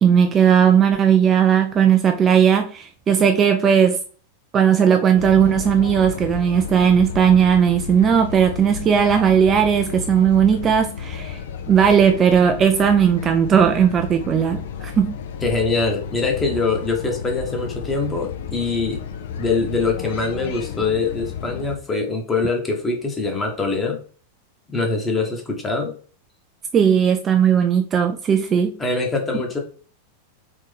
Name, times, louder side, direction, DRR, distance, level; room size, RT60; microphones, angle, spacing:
voice 1, 0.0-4.0 4.5-11.4 11.7-15.2 26.7-28.7, right 8 dB, 25° right, 0.3 m, -17 dB
sound 1, 5.2-21.8, left 7 dB, 55° left, 0.4 m, -32 dB
voice 2, 15.4-19.0 19.4-24.0 24.7-25.9 28.8-29.6, left 3 dB, 15° left, 1.0 m, -23 dB
3.7 x 3.0 x 3.3 m
figure-of-eight pair, 90°, 0 cm